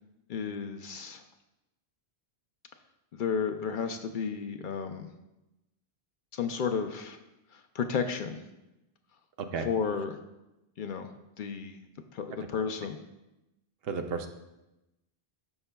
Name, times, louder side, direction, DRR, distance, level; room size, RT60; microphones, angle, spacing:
voice 1, 0.3-1.2 3.1-5.1 6.3-7.2 7.5-8.4 9.6-10.2 10.8-11.1 11.4-11.8 12.1-13.0, left 6 dB, 60° left, 6 dB, 0.6 m, -32 dB
voice 2, 9.4-9.7 13.8-14.3, right 5 dB, 70° right, 6 dB, 0.9 m, -33 dB
12.5 x 5.4 x 2.2 m, 0.95 s
omnidirectional pair, 1.1 m